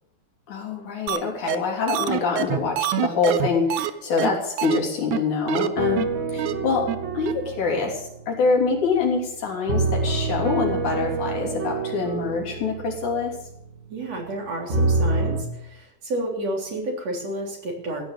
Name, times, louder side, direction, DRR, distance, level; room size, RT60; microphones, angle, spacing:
voice 1, 0.5-13.3, left 4 dB, 75° left, 0 dB, 4.8 m, -25 dB
sound 1, 1.1-1.2 1.5-1.6 1.9-3.9 4.2-4.3 4.6-4.8 5.1-5.2 5.5-5.7 6.0-6.1 6.4-6.5 6.9-7.0 7.3-7.4, right 13 dB, 80° right, 2.2 m, -25 dB
sound 2, 5.8-9.1 9.7-14.3 14.7-15.4, right 3 dB, 35° right, 1.2 m, -27 dB
voice 2, 13.9-18.0, right 1 dB, 55° right, 0 dB, 4.5 m, -30 dB
15.0 x 10.5 x 6.6 m, 0.78 s
omnidirectional pair, 3.4 m